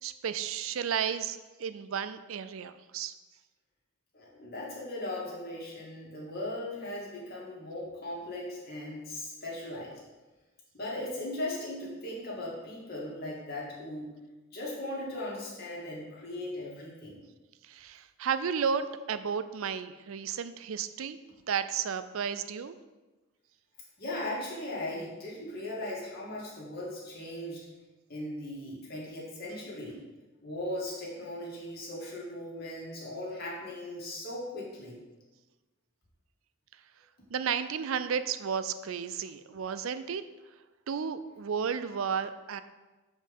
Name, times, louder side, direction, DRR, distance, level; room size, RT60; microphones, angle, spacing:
voice 1, 0.0-3.1 17.6-21.2 21.5-22.8 37.3-40.2 40.9-42.6, right 7 dB, 80° right, 12 dB, 0.4 m, -33 dB
voice 2, 4.1-10.0 10.7-14.1 14.5-17.2 24.0-27.7 28.1-30.0 30.4-35.0, left 1 dB, 50° left, -5 dB, 2.4 m, -38 dB
7.2 x 5.2 x 5.6 m, 1.2 s
head